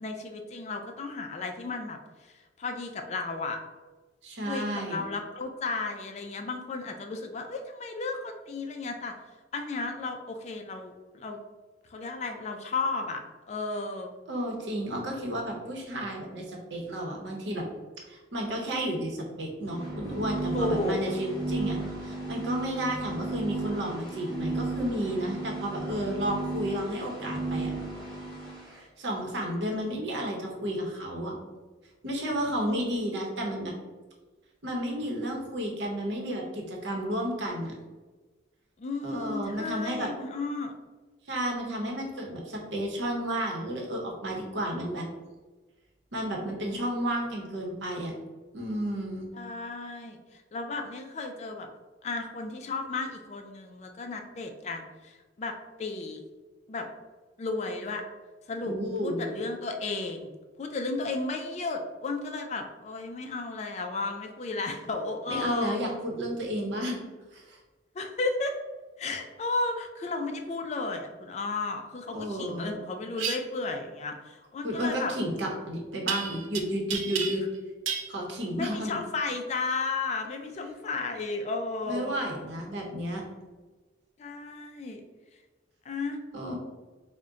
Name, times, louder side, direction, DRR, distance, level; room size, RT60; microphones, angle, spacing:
voice 1, 0.0-2.3 2.6-3.6 4.5-9.1 9.5-11.4 11.9-13.2 13.5-14.1 20.5-21.0 32.6-32.8 33.1-33.2 38.8-40.7 49.3-50.2 50.5-51.7 52.0-56.2 56.7-56.9 57.4-58.0 58.5-58.7 59.0-60.3 60.6-65.9 68.0-68.6 69.0-75.1 78.6-82.1 84.2-85.0 85.9-86.2, left 3 dB, 35° left, 4 dB, 0.3 m, -33 dB
voice 2, 4.2-5.0 14.3-17.7 18.1-27.7 28.7-31.3 32.0-33.7 34.6-37.7 39.0-40.1 41.3-45.1 46.1-48.1 48.5-49.3 58.6-59.2 65.3-67.0 67.3-67.6 72.1-72.7 74.6-77.4 78.1-79.0 81.8-83.2 86.3-86.6, equal, 65° right, 0 dB, 0.8 m, -32 dB
sound 1, 19.6-28.7, right 2 dB, 5° left, 1.2 m, -34 dB
sound 2, 73.2-73.4 76.1-76.6 76.9-77.6 77.9-78.1, right 6 dB, 85° right, 0.5 m, -31 dB
3.6 x 2.1 x 3.7 m, 1.3 s
head